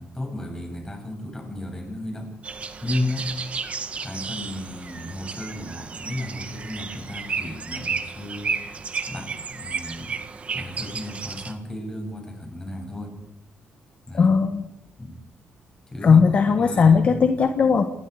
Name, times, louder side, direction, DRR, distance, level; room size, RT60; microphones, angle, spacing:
voice 1, 0.0-3.3 4.0-8.8 9.1-10.2 10.5-13.2 14.1-14.3 15.0-15.2 15.9-17.2, left 1 dB, 15° left, 2 dB, 7.6 m, -34 dB
sound 1, 2.4-11.5, right 5 dB, 35° right, 1.8 m, -33 dB
voice 2, 14.1-14.7 16.0-17.9, left 5 dB, 40° left, 7 dB, 1.4 m, -17 dB
27.5 x 21.0 x 5.0 m, 0.83 s
cardioid pair, 135°, 4 cm